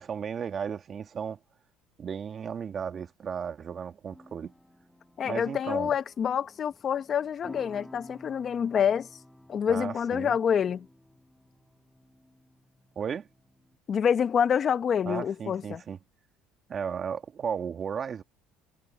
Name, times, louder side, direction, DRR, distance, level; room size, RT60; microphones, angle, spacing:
voice 1, 0.0-1.4 2.0-4.5 5.3-6.0 9.7-10.4 13.0-13.3 15.0-16.0 16.7-18.2, right 7 dB, 40° right, 2.0 m, -35 dB
sound 1, 4.1-13.8, left 1 dB, 5° left, 7.8 m, -53 dB
voice 2, 5.2-9.1 9.5-10.9 13.9-15.8, left 8 dB, 40° left, 1.2 m, -27 dB
cardioid pair, 110°, 0 cm